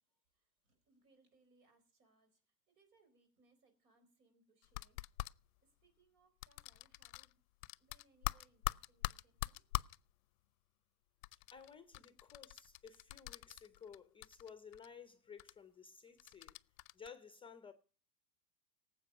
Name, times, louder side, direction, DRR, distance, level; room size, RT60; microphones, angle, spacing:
voice 1, 0.1-5.0 5.6-7.4 7.8-9.7, right 3 dB, 70° right, 4.5 m, -73 dB
sound 1, 4.6-5.3 6.4-7.3 7.6-10.0 11.2-14.0 14.2-14.9 15.4-15.5 16.2-17.1, left 20 dB, 60° left, 0.5 m, -42 dB
voice 2, 11.3-16.6 16.9-17.7, left 6 dB, 10° left, 0.6 m, -56 dB
18.0 x 7.7 x 5.4 m
hypercardioid pair, 115°, 47 cm